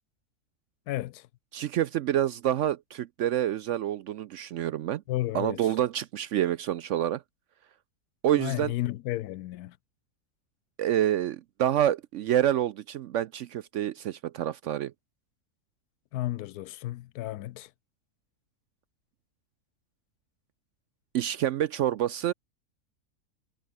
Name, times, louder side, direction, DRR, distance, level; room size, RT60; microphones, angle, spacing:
voice 1, 0.9-1.3 5.1-5.6 8.4-9.8 16.1-17.7, left 15 dB, 85° left, 1.1 m, -33 dB
voice 2, 1.5-5.0 5.3-7.2 8.2-8.7 10.8-14.9 21.1-22.3, right 11 dB, 70° right, 0.7 m, -27 dB
omnidirectional pair, 1.6 m